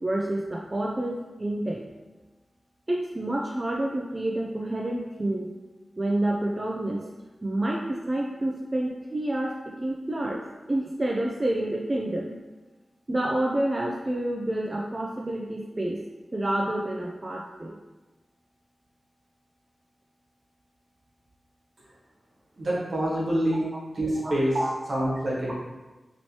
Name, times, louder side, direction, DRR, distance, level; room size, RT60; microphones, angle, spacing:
voice 1, 0.0-1.9 2.9-5.5 6.0-7.0 7.4-9.5 9.8-10.4 10.7-12.3 13.1-16.0 16.3-17.8 24.2-24.7, right 1 dB, 30° right, -1 dB, 0.3 m, -28 dB
voice 2, 22.6-23.7 23.9-24.6 24.9-25.5, right 1 dB, 70° right, -6 dB, 1.1 m, -26 dB
3.0 x 3.0 x 2.8 m, 1.1 s
wide cardioid pair, 70°, 0 cm